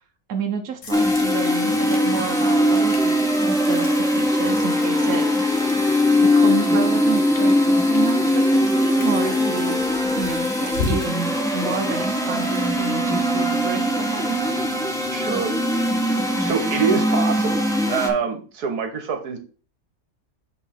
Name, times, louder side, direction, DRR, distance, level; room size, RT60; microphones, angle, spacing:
voice 1, 0.3-5.3 6.2-9.9 10.2-14.5, right 6 dB, 65° right, 3 dB, 1.3 m, -30 dB
sound 1, 0.8-16.9, left 4 dB, 55° left, 1.3 m, -37 dB
sound 2, 0.9-18.1, left 1 dB, 5° left, 1.0 m, -21 dB
voice 2, 15.1-15.5 16.4-19.4, right 6 dB, 80° right, 6 dB, 1.7 m, -25 dB
7.8 x 4.0 x 4.3 m, 0.39 s
omnidirectional pair, 1.6 m